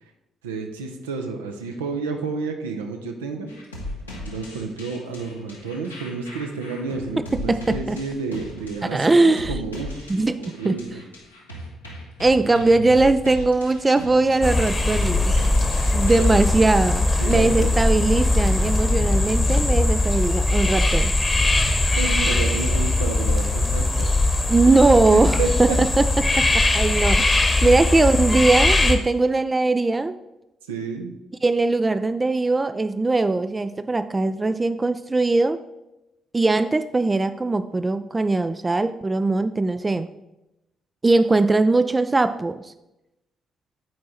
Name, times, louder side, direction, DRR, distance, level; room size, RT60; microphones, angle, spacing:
voice 1, 0.4-3.5 4.3-10.1 10.4-11.0 16.2-16.3 17.2-17.7 22.0-24.1 25.1-25.8 27.6-27.7 30.7-31.1, right 4 dB, 75° right, 4 dB, 0.6 m, -30 dB
sound 1, 3.5-16.5, left 1 dB, 85° left, 0.9 m, -37 dB
voice 2, 7.3-8.0 8.8-9.6 10.1-10.4 10.6-10.8 12.2-15.3 15.9-21.1 24.5-30.2 31.4-35.6 36.3-40.1 41.0-42.7, right 3 dB, 25° right, 12 dB, 0.3 m, -20 dB
sound 2, 14.4-28.9, left 2 dB, 25° left, 1.0 m, -20 dB
7.6 x 4.6 x 4.2 m, 0.92 s
figure-of-eight pair, 40°, 0 cm